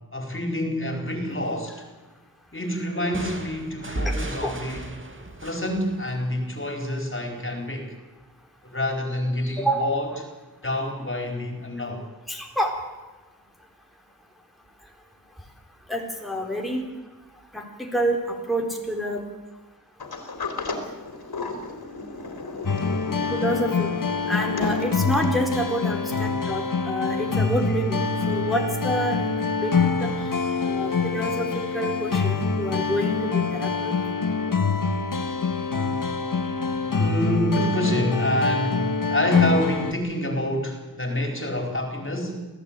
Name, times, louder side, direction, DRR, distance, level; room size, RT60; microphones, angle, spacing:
voice 1, 0.1-1.8 2.5-4.9 5.4-7.9 8.6-10.1 10.6-12.0 26.1-26.2 36.9-42.5, left 1 dB, 35° left, 4 dB, 4.5 m, -27 dB
sound 1, 3.1-6.8, right 1 dB, 35° right, 2.6 m, -34 dB
voice 2, 9.6-10.0 12.3-12.7 15.9-16.8 17.5-19.2 23.3-24.0 24.3-29.7 30.0-30.1 30.6-33.9, equal, ahead, 0 dB, 3.9 m, -28 dB
Sliding door, 20.0-25.4, left 3 dB, 85° left, 3.7 m, -34 dB
sound 2, 22.7-39.9, left 4 dB, 60° left, 2.0 m, -25 dB
26.5 x 16.5 x 9.0 m, 1.2 s
wide cardioid pair, 90°, 36 cm